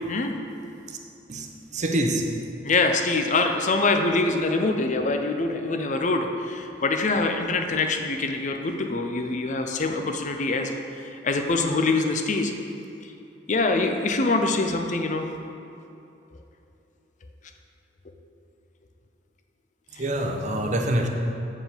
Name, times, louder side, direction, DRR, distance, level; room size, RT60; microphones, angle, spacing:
voice 1, 1.3-2.2 20.0-21.1, right 1 dB, 40° right, 3 dB, 0.8 m, -26 dB
voice 2, 2.6-12.5 13.5-15.3 20.0-20.1, left 3 dB, 40° left, 5 dB, 0.6 m, -24 dB
7.7 x 4.8 x 6.9 m, 2.8 s
head